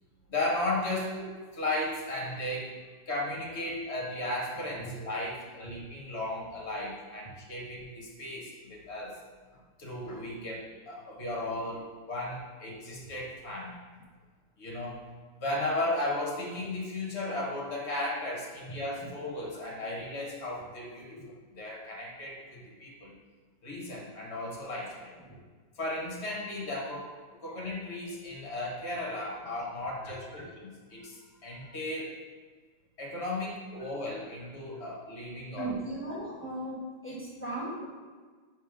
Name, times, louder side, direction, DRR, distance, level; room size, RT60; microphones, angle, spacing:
voice 1, 0.3-1.2 1.6-2.7 3.1-9.2 9.8-13.8 14.6-15.1 15.4-21.2 21.5-23.1 23.6-25.1 25.7-27.1 27.4-30.4 30.9-32.1 33.0-35.7, left 1 dB, 40° left, -3 dB, 1.3 m, -35 dB
voice 2, 30.0-30.5 35.5-37.8, right 1 dB, 10° left, -7 dB, 1.0 m, -38 dB
5.4 x 3.7 x 5.0 m, 1.5 s
omnidirectional pair, 2.1 m